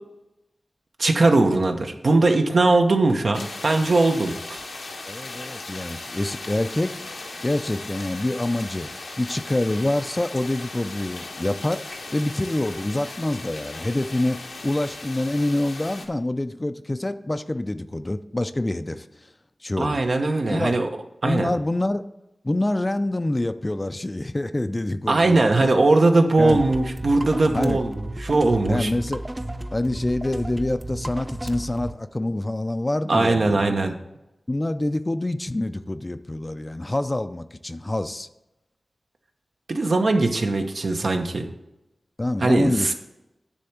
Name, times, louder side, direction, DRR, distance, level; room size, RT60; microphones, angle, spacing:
voice 1, 1.0-4.6 19.8-20.9 21.2-21.5 25.1-28.9 33.1-33.9 39.7-41.5 42.4-42.9, right 2 dB, 70° right, 4 dB, 0.9 m, -20 dB
sound 1, 3.3-16.1, left 3 dB, 90° left, 1.1 m, -37 dB
voice 2, 5.1-7.0 7.4-8.9 9.2-11.8 12.1-19.3 19.6-20.0 20.5-20.8 21.2-22.0 22.4-25.8 26.4-26.6 27.5-27.8 28.7-29.2 29.7-33.7 34.5-38.3 42.2-42.9, left 1 dB, 25° left, 11 dB, 0.4 m, -26 dB
sound 2, 26.4-31.9, right 1 dB, 20° right, 0.5 m, -33 dB
10.0 x 3.4 x 7.0 m, 0.92 s
wide cardioid pair, 70°, 0 cm